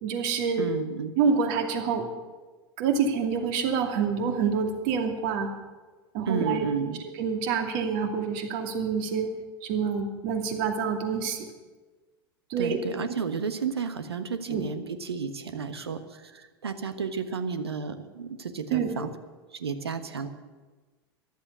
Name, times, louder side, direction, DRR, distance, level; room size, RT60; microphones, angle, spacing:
voice 1, 0.0-0.6 1.2-2.1 2.8-5.5 6.1-6.7 7.2-9.3 9.6-11.4 12.5-12.8 14.5-14.6 18.7-18.9, right 6 dB, 55° right, 5 dB, 2.4 m, -27 dB
voice 2, 0.6-1.1 6.3-7.0 12.6-19.1 19.6-20.3, right 5 dB, 80° right, 10 dB, 1.3 m, -32 dB
14.5 x 11.5 x 8.1 m, 1.3 s
figure-of-eight pair, 90°, 13 cm